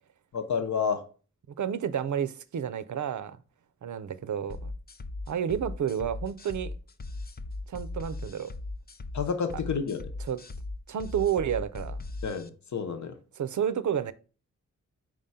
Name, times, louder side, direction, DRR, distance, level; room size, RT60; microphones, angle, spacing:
voice 1, 0.3-1.0 9.1-10.0 12.2-13.2, left 6 dB, 65° left, 0.9 m, -30 dB
voice 2, 1.6-3.4 3.8-4.7 5.3-6.7 7.7-8.5 10.2-10.4 10.9-12.0 13.4-14.1, right 8 dB, 70° right, 0.6 m, -30 dB
sound 1, 4.5-12.5, left 2 dB, 30° left, 0.5 m, -38 dB
4.9 x 3.8 x 5.5 m
cardioid pair, 60°, 31 cm